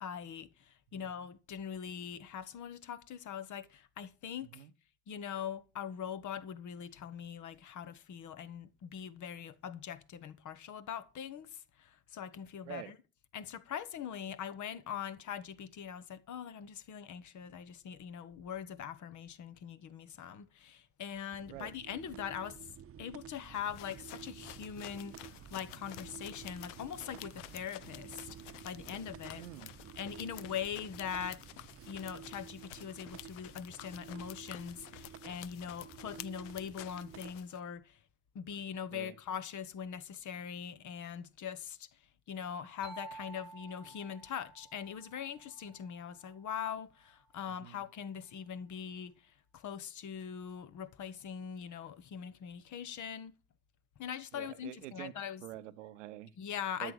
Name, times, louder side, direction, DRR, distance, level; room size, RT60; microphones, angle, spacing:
voice 1, 0.0-4.7 5.1-13.0 13.3-22.7 23.0-29.4 30.0-31.4 31.9-38.0 38.3-42.0 42.3-53.4 54.0-55.4 56.4-56.9, left 8 dB, 55° left, 1.2 m, -42 dB
sound 1, 21.3-37.3, right 9 dB, 40° right, 0.8 m, -52 dB
sound 2, 23.5-37.6, left 15 dB, 75° left, 0.6 m, -51 dB
voice 2, 29.3-29.7 38.9-39.2 47.6-47.8 54.3-56.4 56.8-56.9, right 15 dB, 80° right, 0.8 m, -47 dB
sound 3, 42.8-46.5, right 4 dB, 10° left, 2.7 m, -52 dB
13.0 x 7.4 x 6.6 m
figure-of-eight pair, 45°, 36 cm